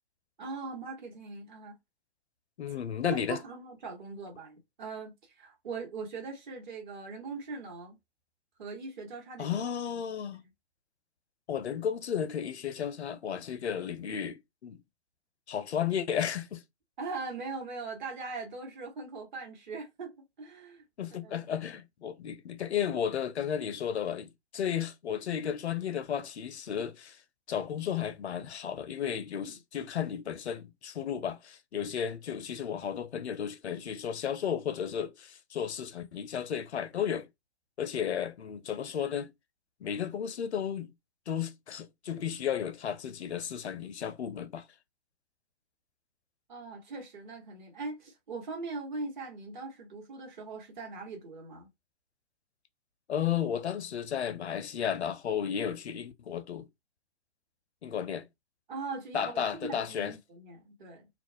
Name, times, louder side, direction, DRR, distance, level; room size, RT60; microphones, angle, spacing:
voice 1, 0.4-1.8 2.7-2.8 3.0-8.0 8.6-9.6 10.3-10.5 17.0-20.8 21.2-21.3 29.3-29.6 46.5-51.7 58.7-61.1, right 4 dB, 45° right, 1.0 m, -41 dB
voice 2, 2.6-3.4 9.4-10.4 11.5-14.8 15.5-16.6 21.0-27.2 27.5-37.3 37.8-39.3 39.8-40.9 41.3-44.7 53.1-56.7 57.8-58.3 59.1-60.1, left 8 dB, 75° left, 0.5 m, -33 dB
2.3 x 2.0 x 2.7 m
figure-of-eight pair, 120°, 33 cm